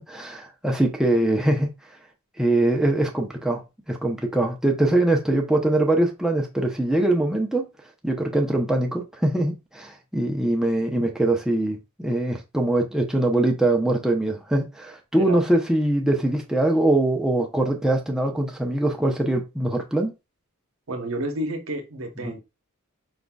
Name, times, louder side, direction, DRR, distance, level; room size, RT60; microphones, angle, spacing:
voice 1, 0.0-1.7 2.4-3.6 3.9-7.6 8.0-20.1 22.2-22.3, right 1 dB, 5° right, 0.6 m, -22 dB
voice 2, 20.9-22.4, right 1 dB, 70° right, 0.9 m, -30 dB
5.0 x 3.8 x 2.3 m
head